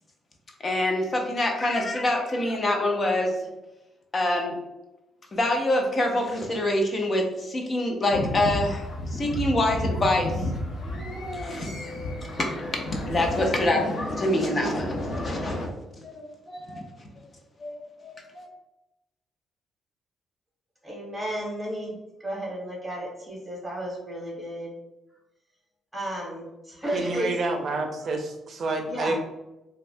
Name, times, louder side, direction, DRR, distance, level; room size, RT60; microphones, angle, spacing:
voice 1, 0.6-3.4 4.1-4.6 5.3-10.4 10.8-11.8 12.3-15.6 16.0-16.8 17.6-18.5, left 1 dB, 35° left, 2 dB, 0.7 m, -26 dB
sound 1, 8.1-15.7, left 1 dB, 85° left, 0.7 m, -32 dB
voice 2, 20.8-22.0 22.2-24.7 25.9-27.3 28.9-29.2, right 1 dB, 5° right, -4 dB, 1.4 m, -33 dB
voice 3, 26.9-29.2, right 2 dB, 55° right, 4 dB, 0.5 m, -28 dB
3.1 x 2.3 x 2.6 m, 0.97 s
cardioid pair, 90°, 0 cm